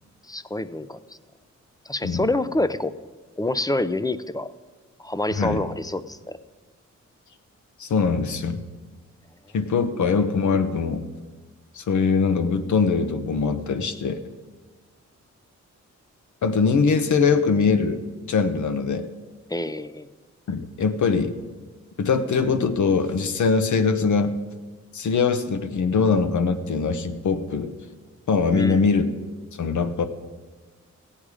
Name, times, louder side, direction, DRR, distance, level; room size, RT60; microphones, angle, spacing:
voice 1, 0.3-1.0 1.9-2.9 3.4-4.5 5.0-6.4 19.5-20.1 28.5-28.9, left 2 dB, 15° left, 14 dB, 0.4 m, -27 dB
voice 2, 7.8-8.6 9.5-11.0 11.7-14.2 16.4-18.0 18.3-19.1 20.5-21.3 22.0-24.4 24.9-27.7 28.3-29.1 29.6-30.0, left 5 dB, 75° left, 8 dB, 1.0 m, -22 dB
16.0 x 8.7 x 4.9 m, 1.3 s
cardioid pair, 90°, 29 cm